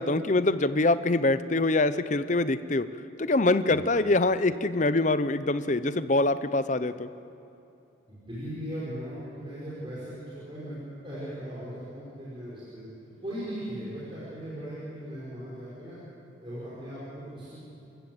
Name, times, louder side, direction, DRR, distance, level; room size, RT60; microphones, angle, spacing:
voice 1, 0.0-2.9 3.2-7.1, left 2 dB, 40° left, 13 dB, 0.7 m, -24 dB
voice 2, 8.1-10.8 11.0-12.9 13.2-16.0 16.4-17.6, equal, 25° right, -8 dB, 5.5 m, -38 dB
28.0 x 15.0 x 8.0 m, 2.9 s
head